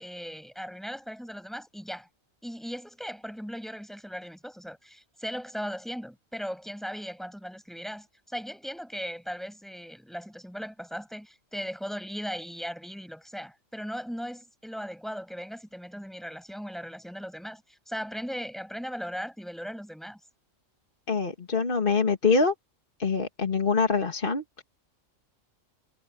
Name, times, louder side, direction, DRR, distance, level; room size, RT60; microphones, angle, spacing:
voice 1, 0.0-2.1 2.4-20.2, equal, ahead, 5.9 m, -38 dB
voice 2, 21.1-22.5 23.0-24.6, left 4 dB, 40° left, 2.0 m, -25 dB
omnidirectional pair, 1.4 m